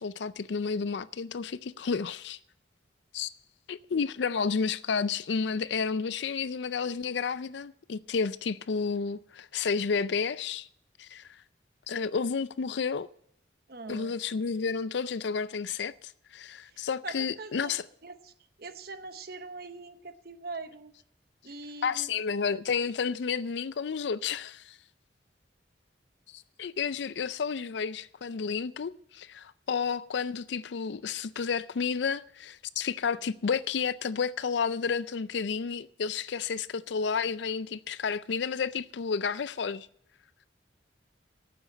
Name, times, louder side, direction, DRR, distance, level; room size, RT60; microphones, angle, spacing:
voice 1, 0.0-2.4 3.1-3.3 3.7-10.7 11.0-11.3 11.9-13.1 13.9-15.9 16.3-17.8 21.8-24.8 26.3-39.9, left 5 dB, 70° left, 0.4 m, -31 dB
voice 2, 13.7-14.2 16.7-17.8 18.0-18.3 18.6-20.9 21.4-22.1, right 3 dB, 55° right, 0.9 m, -43 dB
9.1 x 7.7 x 8.8 m
head